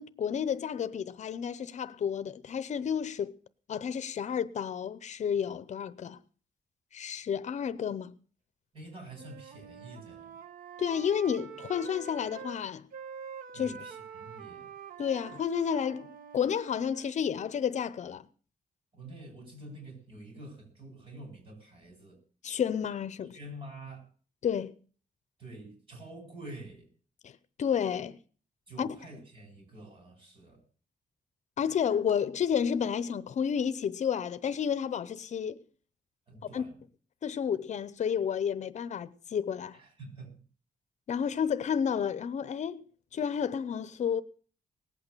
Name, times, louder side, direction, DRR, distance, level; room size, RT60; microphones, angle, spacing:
voice 1, 0.0-3.4 3.7-6.2 6.9-8.1 10.8-12.9 13.5-13.7 15.0-18.3 22.4-23.4 24.4-24.7 27.2-28.2 28.8-28.9 31.6-35.6 36.5-36.6 37.2-39.8 41.1-42.8 43.1-44.2, left 7 dB, 55° left, 0.8 m, -31 dB
voice 2, 8.7-10.4 13.5-14.7 18.9-22.2 23.3-24.1 25.4-26.9 28.7-30.6 36.3-36.8 39.7-40.4, right 1 dB, 40° right, 7.8 m, -47 dB
Wind instrument woodwind instrument, 9.1-12.6 12.9-17.1, right 7 dB, 85° right, 1.2 m, -46 dB
19.0 x 8.7 x 6.7 m
wide cardioid pair, 175°, 14 cm